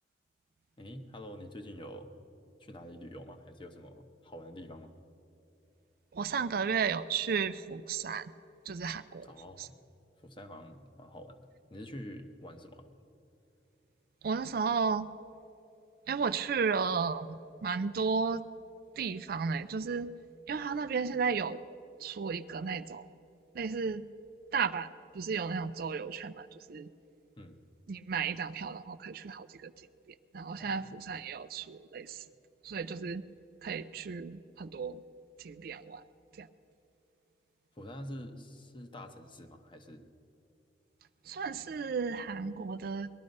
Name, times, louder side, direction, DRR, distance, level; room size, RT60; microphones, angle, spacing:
voice 1, 0.8-2.1 2.6-4.9 9.2-9.7 10.2-12.9 27.4-27.6 30.6-30.9 37.7-40.1, equal, 30° left, 6 dB, 0.9 m, -47 dB
voice 2, 6.1-8.3 8.7-9.3 9.6-9.7 14.2-15.1 16.1-17.3 17.6-18.4 19.0-20.1 20.5-21.6 22.0-23.0 23.6-24.1 24.5-24.9 25.1-26.9 27.9-29.7 30.3-32.2 32.6-33.2 33.6-35.0 35.4-36.0 36.4-36.5 41.3-43.1, right 5 dB, 55° right, 14 dB, 0.4 m, -33 dB
19.5 x 12.0 x 5.3 m, 2.8 s
head